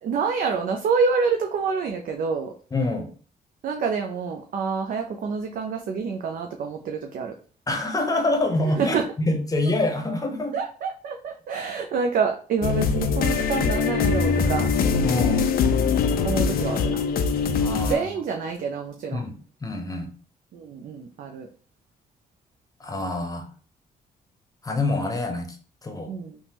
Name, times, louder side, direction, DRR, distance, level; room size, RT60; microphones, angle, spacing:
voice 1, 0.0-2.5 3.6-7.3 8.8-9.0 10.5-14.7 16.2-17.0 17.9-19.2 20.5-21.5 26.1-26.4, right 5 dB, 60° right, 3 dB, 0.4 m, -27 dB
voice 2, 2.7-3.1 7.7-10.6 15.0-15.5 17.6-18.1 19.1-20.1 22.8-23.5 24.6-25.6 25.8-26.1, left 2 dB, 20° left, 5 dB, 0.7 m, -26 dB
sound 1, 12.6-18.0, left 5 dB, 60° left, 0.4 m, -22 dB
3.4 x 2.0 x 2.8 m, 0.42 s
cardioid pair, 75°, 17 cm